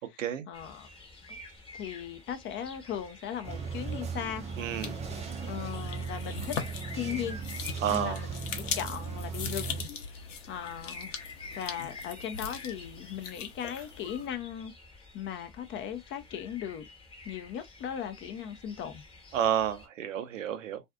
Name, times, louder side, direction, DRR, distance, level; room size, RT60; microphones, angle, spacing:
voice 1, 0.5-0.9 1.3-1.4 1.7-4.5 5.5-6.6 6.9-7.4 7.9-9.8 10.5-11.1 11.6-14.7 15.1-16.9 17.2-19.0, left 9 dB, 30° left, 0.5 m, -38 dB
sound 1, 0.5-19.9, left 3 dB, 15° left, 1.0 m, -49 dB
sound 2, 3.4-9.8, right 5 dB, 20° right, 0.5 m, -37 dB
sound 3, 4.6-14.3, left 6 dB, 80° left, 0.8 m, -41 dB
voice 2, 4.6-5.0 7.8-8.2 19.3-20.9, right 9 dB, 85° right, 0.6 m, -30 dB
2.5 x 2.3 x 2.3 m
hypercardioid pair, 95°, 37 cm